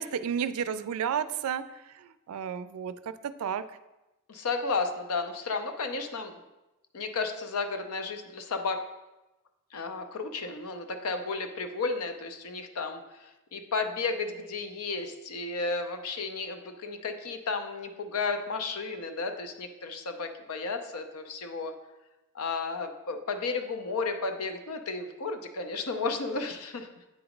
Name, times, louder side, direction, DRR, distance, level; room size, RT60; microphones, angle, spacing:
voice 1, 0.0-1.6 2.0-2.9 3.2-3.6, right 7 dB, 80° right, 13 dB, 0.4 m, -31 dB
voice 2, 4.3-6.3 6.9-8.8 9.7-21.7 22.3-27.0, left 4 dB, 85° left, 7 dB, 0.7 m, -33 dB
8.3 x 3.0 x 5.1 m, 1.0 s
head